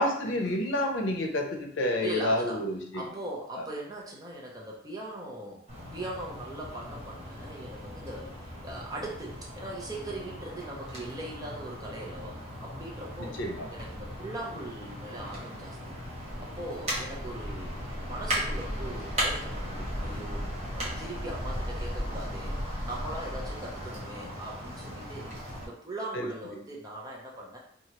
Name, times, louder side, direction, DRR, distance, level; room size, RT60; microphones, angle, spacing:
voice 1, 0.0-3.0 13.4-13.7 26.1-26.3, left 1 dB, 85° left, 2 dB, 0.6 m, -29 dB
voice 2, 2.0-2.6 2.9-5.6 5.9-13.4 13.7-15.9 16.4-17.7 18.0-20.5 20.7-22.6 22.8-25.3 25.6-27.6, right 1 dB, 20° right, -2 dB, 0.6 m, -40 dB
sound 1, 5.7-25.6, equal, 35° right, 1.0 m, -37 dB
2.9 x 2.4 x 2.9 m, 0.64 s
head